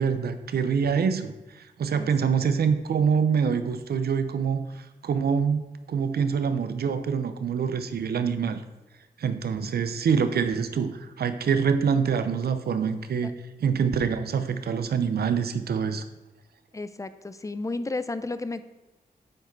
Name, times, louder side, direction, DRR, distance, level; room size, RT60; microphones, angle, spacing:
voice 1, 0.0-8.6 9.2-13.3 13.6-16.0, right 6 dB, 75° right, 10 dB, 0.6 m, -25 dB
voice 2, 2.0-2.3 13.2-13.3 16.7-18.6, left 3 dB, 20° left, 12 dB, 0.5 m, -33 dB
7.5 x 4.7 x 4.6 m, 1.0 s
cardioid pair, 50°, 16 cm